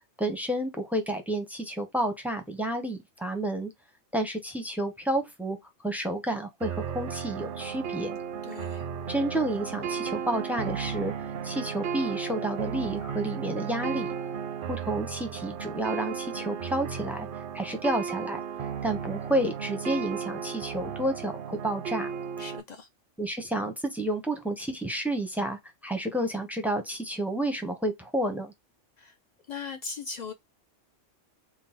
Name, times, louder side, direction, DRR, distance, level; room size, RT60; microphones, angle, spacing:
voice 1, 0.2-3.7 4.1-5.6 5.8-8.2 9.1-11.1 11.4-14.1 14.7-17.3 17.5-18.4 18.8-22.1 23.2-28.5, right 1 dB, ahead, 0.4 m, -30 dB
sound 1, 6.6-22.6, right 7 dB, 60° right, 0.6 m, -34 dB
voice 2, 8.4-8.8 22.4-22.9 29.0-29.1 29.5-30.3, left 5 dB, 65° left, 0.4 m, -38 dB
3.7 x 2.0 x 4.2 m
omnidirectional pair, 1.2 m